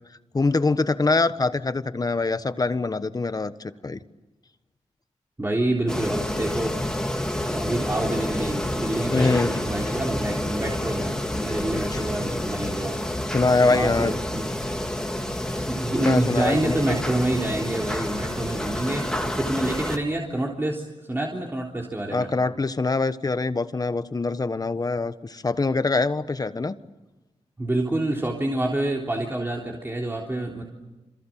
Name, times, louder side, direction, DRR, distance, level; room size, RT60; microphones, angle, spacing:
voice 1, 0.3-4.0 9.1-9.5 11.9-12.0 13.3-14.2 16.0-16.9 22.1-26.8, left 3 dB, 30° left, 12 dB, 1.3 m, -24 dB
voice 2, 5.4-6.8 7.5-13.0 13.7-14.5 15.7-22.3 27.6-30.6, right 1 dB, 20° right, -1 dB, 3.6 m, -27 dB
sound 1, 5.9-20.0, left 1 dB, 5° left, 2.7 m, -29 dB
28.0 x 27.5 x 7.6 m, 1.1 s
wide cardioid pair, 95°, 12 cm